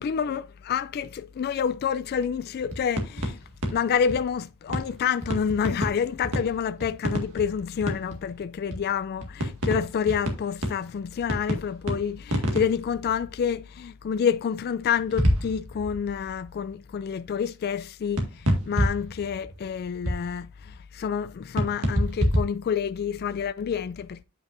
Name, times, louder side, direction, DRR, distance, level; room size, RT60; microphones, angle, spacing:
voice 1, 0.0-3.4 3.7-18.3 18.6-24.2, left 7 dB, 45° left, 0.3 m, -28 dB
sound 1, 2.6-4.3 4.7-5.0 5.2-8.4 8.7-8.8 9.2-13.4 15.0-16.5 18.2-20.8 21.6-22.4, equal, 70° right, 1.9 m, -28 dB
8.6 x 5.4 x 2.5 m
head